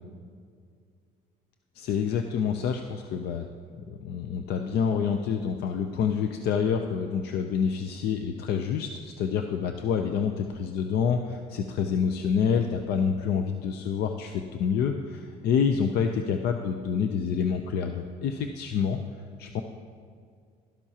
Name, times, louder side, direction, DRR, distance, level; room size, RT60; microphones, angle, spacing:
voice 1, 1.7-3.5 3.7-19.0 19.4-19.6, left 6 dB, 70° left, 6 dB, 0.6 m, -27 dB
12.0 x 12.0 x 2.9 m, 2.1 s
cardioid pair, 110°, 17 cm